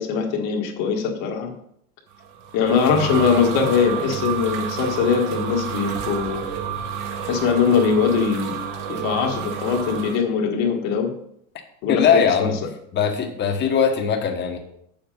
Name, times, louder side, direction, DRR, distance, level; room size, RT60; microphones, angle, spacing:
voice 1, 0.0-1.5 2.5-6.4 7.3-8.6 8.9-11.1 11.8-12.5, left 6 dB, 55° left, 1 dB, 1.7 m, -21 dB
sound 1, 2.2-10.2, right 7 dB, 85° right, 1.8 m, -30 dB
voice 2, 11.9-12.6 12.9-14.6, left 7 dB, 25° left, 4 dB, 1.4 m, -20 dB
8.5 x 7.2 x 5.3 m, 0.72 s
cardioid pair, 160°, 39 cm